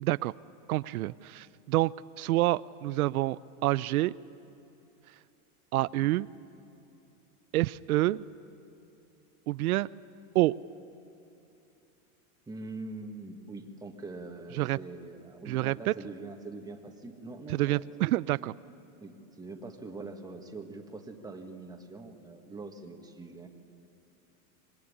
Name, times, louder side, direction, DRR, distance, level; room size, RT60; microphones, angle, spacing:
voice 1, 0.0-0.3 0.7-4.1 5.7-6.3 7.5-8.2 9.5-9.9 10.3-10.5 14.5-14.8 15.5-15.8 17.5-18.5, right 17 dB, 90° right, 17 dB, 0.6 m, -27 dB
voice 2, 12.5-18.1 19.0-23.5, right 3 dB, 10° right, 4 dB, 1.8 m, -43 dB
25.5 x 21.0 x 9.9 m, 2.7 s
supercardioid pair, 140°, 43 cm